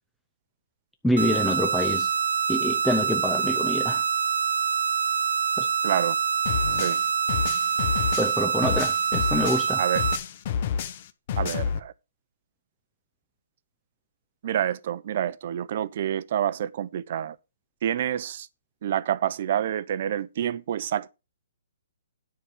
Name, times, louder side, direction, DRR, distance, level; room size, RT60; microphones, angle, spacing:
voice 1, 1.0-2.1 2.5-4.0 5.6-5.7 8.2-9.8, left 1 dB, ahead, 0.5 m, -26 dB
sound 1, 1.2-10.2, right 7 dB, 65° right, 1.0 m, -25 dB
voice 2, 5.8-6.2 6.7-7.0 9.8-10.0 11.4-11.9 14.4-17.4 17.8-18.5 18.8-21.1, right 10 dB, 40° right, 0.7 m, -28 dB
sound 2, 6.5-9.7 10.0-11.8, left 7 dB, 35° left, 0.9 m, -29 dB
10.0 x 5.1 x 6.7 m
hypercardioid pair, 170°, 0 cm